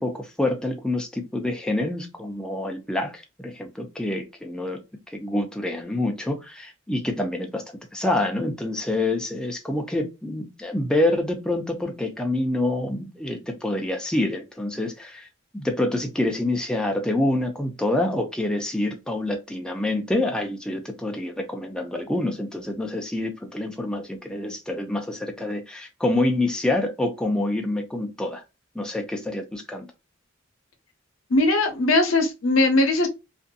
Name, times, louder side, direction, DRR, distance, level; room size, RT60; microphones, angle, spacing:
voice 1, 0.0-4.8 5.1-7.6 7.9-15.3 15.5-28.4 28.7-29.9, left 1 dB, 5° left, 0.4 m, -27 dB
voice 2, 31.3-33.1, left 2 dB, 80° left, 0.8 m, -20 dB
2.6 x 2.5 x 2.2 m
head